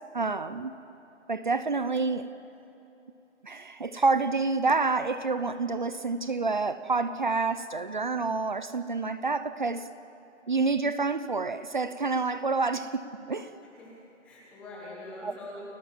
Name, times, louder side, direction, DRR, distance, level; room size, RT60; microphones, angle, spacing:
voice 1, 0.1-0.7 1.3-2.3 3.4-9.9 10.5-13.5 15.2-15.3, right 3 dB, 40° right, 13 dB, 0.8 m, -28 dB
voice 2, 13.8-15.6, left 2 dB, 5° left, -5 dB, 1.2 m, -44 dB
29.0 x 17.5 x 7.6 m, 2.9 s
hypercardioid pair, 170°, 37 cm